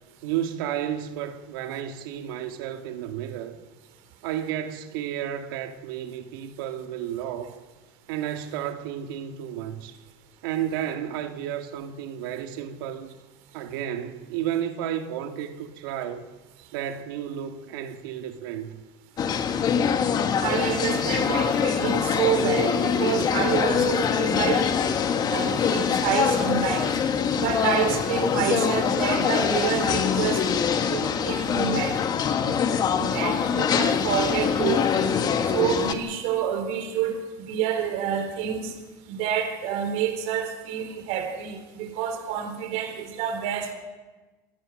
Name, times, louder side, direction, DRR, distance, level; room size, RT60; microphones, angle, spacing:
voice 1, 0.2-3.6 4.2-7.6 8.1-10.0 10.4-13.1 13.5-16.2 16.7-18.8, right 10 dB, 90° right, 2.0 m, -32 dB
sound 1, 19.2-35.9, left 7 dB, 35° left, 1.8 m, -24 dB
voice 2, 20.4-24.9 25.3-26.9 27.3-30.4 30.8-32.0 32.4-32.5 33.0-35.1 35.5-37.2 37.5-38.7 39.1-43.7, right 8 dB, 70° right, 4.2 m, -28 dB
28.5 x 17.5 x 6.6 m
cardioid pair, 130°, 11 cm